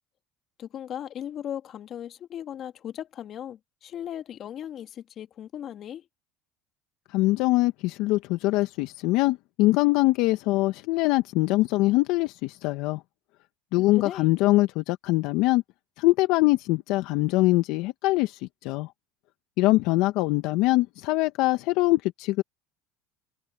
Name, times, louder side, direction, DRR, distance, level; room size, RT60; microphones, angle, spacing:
voice 1, 0.6-6.0 13.8-14.3, left 10 dB, 50° left, 2.1 m, -37 dB
voice 2, 7.1-13.0 13.7-15.6 16.0-18.9 19.6-22.4, left 20 dB, 70° left, 1.5 m, -23 dB
hypercardioid pair, 85°, 0 cm